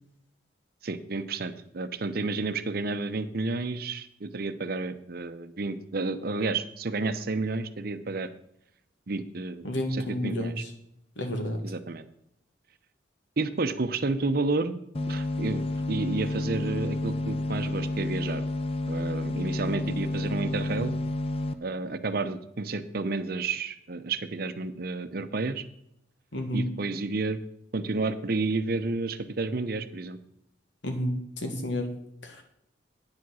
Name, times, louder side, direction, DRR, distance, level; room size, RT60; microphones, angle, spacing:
voice 1, 0.8-8.3 9.1-10.5 11.6-12.0 13.4-14.8 15.1-15.6 15.9-18.4 18.9-21.0 21.6-25.6 26.5-27.4 27.7-30.2, right 3 dB, 55° right, 10 dB, 0.7 m, -31 dB
voice 2, 9.6-10.6 11.2-11.6 26.3-26.7 30.8-31.9 32.2-32.4, left 1 dB, 80° left, 4 dB, 1.9 m, -30 dB
sound 1, 14.9-21.5, left 2 dB, 30° left, 0.6 m, -30 dB
9.5 x 7.2 x 6.3 m, 0.77 s
head